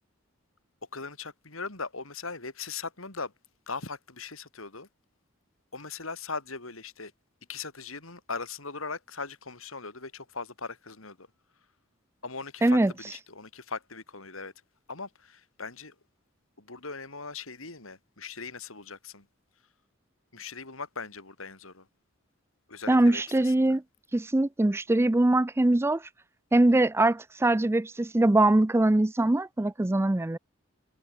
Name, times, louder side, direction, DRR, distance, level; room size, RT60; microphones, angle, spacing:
voice 1, 0.9-3.3 3.7-4.9 5.7-7.1 7.5-11.3 12.2-14.5 14.9-15.9 16.6-19.3 20.3-21.9 22.7-23.8, left 4 dB, 85° left, 4.6 m, -39 dB
voice 2, 12.6-12.9 22.9-23.8 24.1-26.0 26.5-30.4, right 2 dB, 10° right, 0.4 m, -22 dB
head